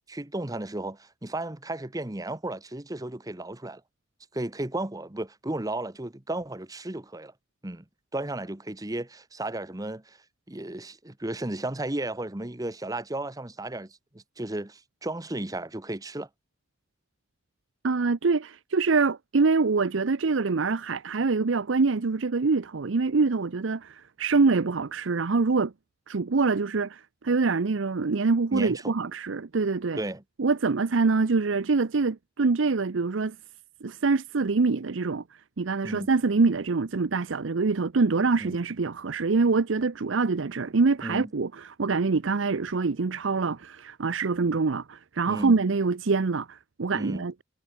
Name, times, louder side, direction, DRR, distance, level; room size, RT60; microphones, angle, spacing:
voice 1, 0.1-3.8 4.3-7.3 7.6-7.8 8.1-10.2 10.5-16.3 28.5-28.9 30.0-30.2 35.8-36.1 38.4-38.6 41.0-41.3 45.3-45.6 46.9-47.2, right 1 dB, 20° right, 1.1 m, -34 dB
voice 2, 17.8-25.7 26.1-30.0 30.4-33.4 33.8-35.2 35.6-47.4, right 4 dB, 80° right, 0.7 m, -25 dB
head